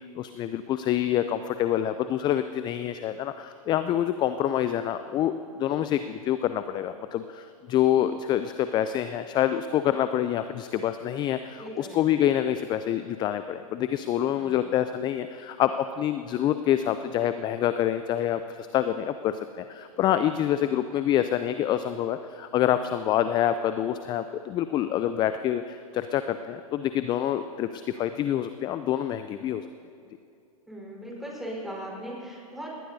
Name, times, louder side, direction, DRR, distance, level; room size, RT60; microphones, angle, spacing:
voice 1, 0.2-5.3 5.6-29.7, left 11 dB, 25° left, 11 dB, 0.4 m, -26 dB
voice 2, 11.6-12.1 14.3-14.7 30.7-32.7, equal, ahead, -3 dB, 4.4 m, -39 dB
20.0 x 18.0 x 2.8 m, 2.6 s
hypercardioid pair, 115°, 19 cm